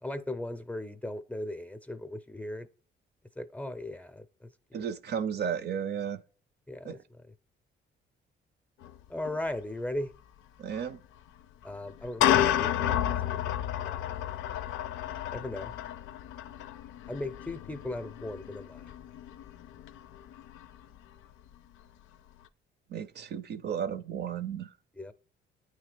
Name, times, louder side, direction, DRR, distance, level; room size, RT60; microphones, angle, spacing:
voice 1, 0.0-2.7 3.4-4.8 6.7-7.3 9.1-10.1 11.6-14.2 15.3-15.7 17.1-18.9 25.0-25.1, left 1 dB, 5° left, 0.6 m, -38 dB
voice 2, 4.7-6.2 6.8-7.0 10.6-11.0 22.9-24.7, right 8 dB, 55° right, 0.6 m, -34 dB
sound 1, 8.8-9.0 9.2-9.4 10.8-10.9 11.9-21.0, left 11 dB, 85° left, 0.5 m, -31 dB
8.8 x 3.3 x 4.9 m
cardioid pair, 90°, 20 cm